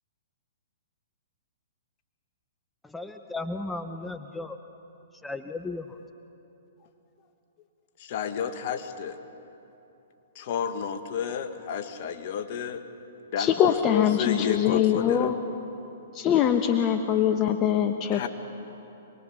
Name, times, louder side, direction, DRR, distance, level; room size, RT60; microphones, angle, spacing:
voice 1, 2.8-4.6 5.2-6.0, left 2 dB, 5° left, 8 dB, 0.8 m, -35 dB
voice 2, 8.0-9.2 10.3-12.8 13.3-15.3 18.1-18.3, left 7 dB, 50° left, 8 dB, 1.6 m, -31 dB
voice 3, 13.4-15.3 16.1-18.3, left 9 dB, 30° left, 6 dB, 1.0 m, -23 dB
26.5 x 20.5 x 6.9 m, 3.0 s
hypercardioid pair, 120°, 0 cm